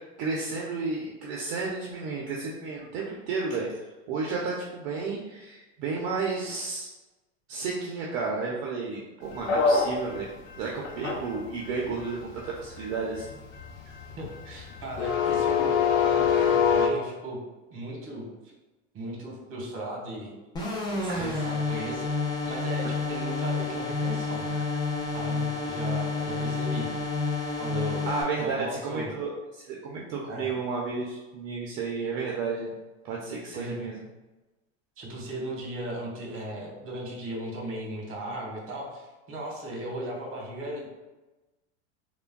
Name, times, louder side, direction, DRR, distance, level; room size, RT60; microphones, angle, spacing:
voice 1, 0.2-3.7 4.1-6.9 7.5-10.3 10.6-13.4 16.3-16.5 21.1-21.5 24.5-24.6 28.1-32.7 33.0-34.0, right 4 dB, 55° right, -2 dB, 0.6 m, -32 dB
sound 1, 9.3-16.9, left 6 dB, 90° left, 0.6 m, -25 dB
voice 2, 14.2-17.4 17.7-18.3 18.9-20.3 20.9-24.5 25.1-26.9 27.6-28.0 28.4-29.1 30.3-30.5 33.5-33.9 35.0-40.9, right 1 dB, 35° right, -1 dB, 1.1 m, -37 dB
sound 2, 20.6-28.2, left 3 dB, 10° left, 0.3 m, -29 dB
3.3 x 2.2 x 2.2 m, 1.1 s
supercardioid pair, 110°, 38 cm